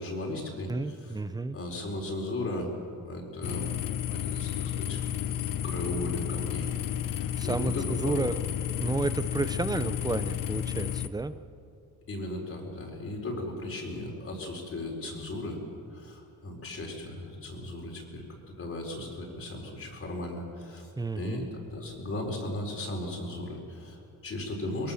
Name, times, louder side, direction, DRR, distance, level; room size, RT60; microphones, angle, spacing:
voice 1, 0.0-1.2 1.5-2.7 3.0-3.7 4.1-6.7 7.1-8.2 12.1-15.6 15.9-18.2 18.6-20.9 21.2-24.9, left 1 dB, 35° left, 0 dB, 4.5 m, -36 dB
voice 2, 0.7-1.6 7.4-8.3 8.8-11.3 21.0-21.5, right 3 dB, 10° right, 12 dB, 0.7 m, -31 dB
sound 1, 3.4-11.1, left 10 dB, 60° left, 1.0 m, -32 dB
23.5 x 22.5 x 7.2 m, 2.5 s
cardioid pair, 165°, 37 cm